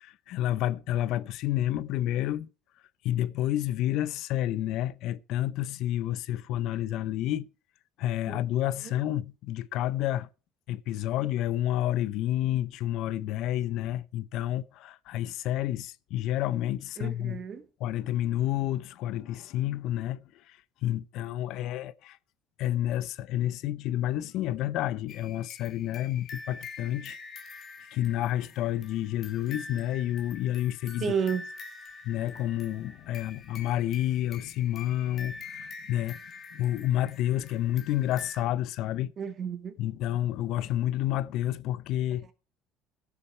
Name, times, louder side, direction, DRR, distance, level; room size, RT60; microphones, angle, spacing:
voice 1, 0.0-2.5 3.0-7.5 8.0-10.3 10.7-17.4 17.8-22.2 22.6-27.2 27.9-31.1 32.0-36.2 36.5-39.1 39.8-42.3, left 13 dB, 60° left, 0.7 m, -30 dB
voice 2, 17.0-17.6 31.0-31.5 39.2-39.7, right 6 dB, 35° right, 1.8 m, -31 dB
sound 1, 25.1-38.4, left 4 dB, 40° left, 2.1 m, -46 dB
15.5 x 6.9 x 4.5 m
cardioid pair, 130°, 0 cm